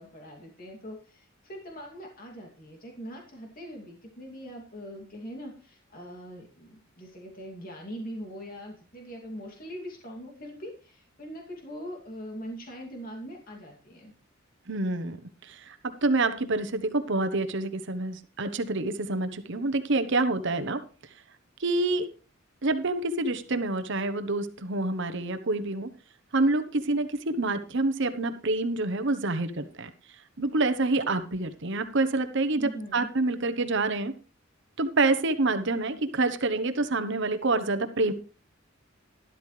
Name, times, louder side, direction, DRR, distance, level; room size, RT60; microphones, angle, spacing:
voice 1, 0.0-14.1 32.5-33.1, equal, 45° left, 0 dB, 2.7 m, -42 dB
voice 2, 14.7-15.2 15.4-20.8 21.6-22.1 22.6-25.9 26.3-29.9 30.4-34.1 34.8-38.1, right 2 dB, 60° right, 10 dB, 1.1 m, -27 dB
12.5 x 12.0 x 3.3 m, 0.35 s
head